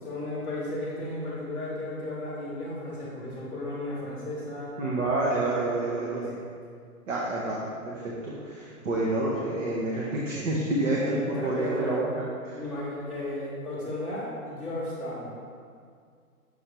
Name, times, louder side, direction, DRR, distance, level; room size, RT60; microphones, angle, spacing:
voice 1, 0.0-4.7 5.9-6.3 11.0-12.0 12.5-15.4, left 1 dB, 5° right, -13 dB, 0.8 m, -34 dB
voice 2, 4.8-6.3 7.1-11.0 11.3-12.1 12.4-12.6, right 2 dB, 55° right, -4 dB, 1.0 m, -28 dB
6.6 x 3.3 x 4.3 m, 2.2 s
hypercardioid pair, 160°, 45 cm